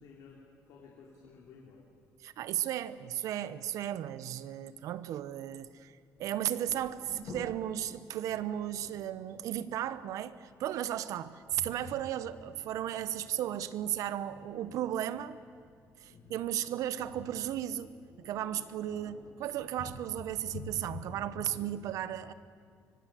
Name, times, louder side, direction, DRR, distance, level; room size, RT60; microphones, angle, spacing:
voice 1, 0.0-1.9 16.0-16.4, left 5 dB, 85° left, -2 dB, 3.7 m, -54 dB
voice 2, 2.2-5.9 6.2-15.4 16.0-17.9 18.2-22.3, right 11 dB, 75° right, 14 dB, 1.0 m, -35 dB
sound 1, 6.1-21.6, left 3 dB, 65° left, 7.4 m, -50 dB
24.5 x 24.0 x 7.7 m, 2.2 s
cardioid pair, 160°, 6 cm